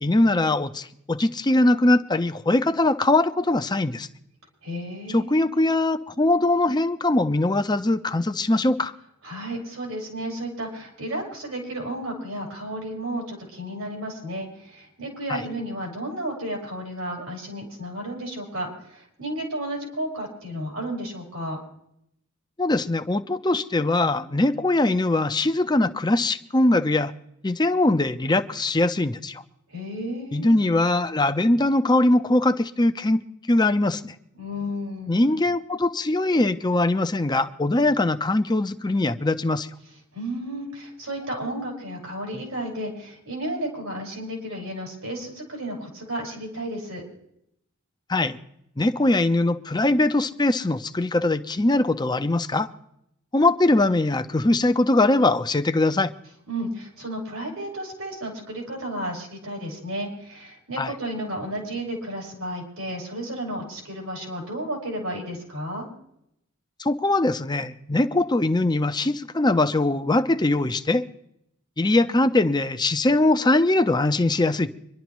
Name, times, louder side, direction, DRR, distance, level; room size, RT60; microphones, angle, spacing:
voice 1, 0.0-4.1 5.1-8.9 15.3-15.4 22.6-27.1 27.4-29.4 30.3-33.2 33.5-34.1 35.1-39.7 48.1-48.4 48.8-52.7 53.3-56.1 60.8-60.9 66.8-71.0 71.8-74.7, left 2 dB, 20° left, 10 dB, 0.7 m, -21 dB
voice 2, 4.6-5.5 9.2-21.6 29.7-30.6 34.4-35.2 40.1-47.0 56.5-65.9, right 1 dB, 90° right, -1 dB, 5.0 m, -32 dB
25.5 x 11.5 x 3.1 m, 0.76 s
head